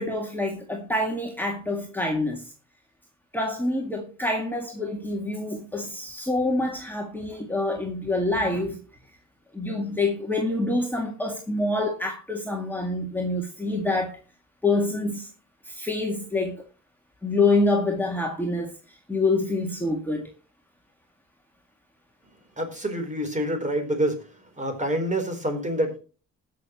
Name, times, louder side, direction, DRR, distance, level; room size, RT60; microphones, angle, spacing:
voice 1, 0.0-2.5 3.3-8.8 9.5-14.1 14.6-15.3 15.7-16.6 17.2-18.7 19.1-20.3, left 2 dB, 5° left, 1.9 m, -26 dB
voice 2, 22.6-24.3 24.6-26.0, right 1 dB, 25° right, 4.0 m, -27 dB
19.5 x 6.6 x 3.1 m
cardioid pair, 90°, 30 cm